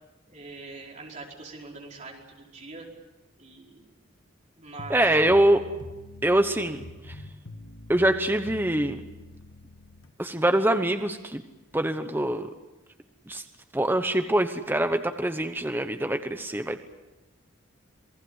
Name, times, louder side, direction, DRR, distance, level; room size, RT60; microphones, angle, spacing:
voice 1, 0.3-2.9 3.4-3.9 4.6-5.0, right 3 dB, 35° right, -2 dB, 5.1 m, -43 dB
sound 1, 4.8-10.1, left 2 dB, 75° left, 1.5 m, -44 dB
voice 2, 4.9-5.6 6.2-7.1 7.9-9.0 10.2-11.4 11.7-12.5 13.3-13.4 13.7-16.8, right 1 dB, 10° right, 7 dB, 1.0 m, -24 dB
27.5 x 19.0 x 8.0 m, 1.1 s
head